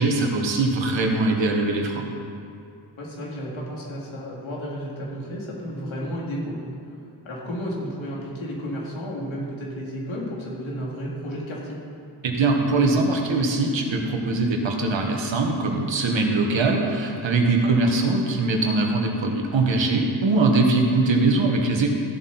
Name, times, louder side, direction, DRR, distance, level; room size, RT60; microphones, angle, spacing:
voice 1, 0.0-2.0 12.2-21.9, right 3 dB, 70° right, 2 dB, 1.7 m, -22 dB
voice 2, 3.0-6.7 7.2-11.8 17.6-17.7 18.0-18.2, equal, 75° left, -4 dB, 3.0 m, -32 dB
15.0 x 7.6 x 4.4 m, 2.5 s
cardioid pair, 65°, 47 cm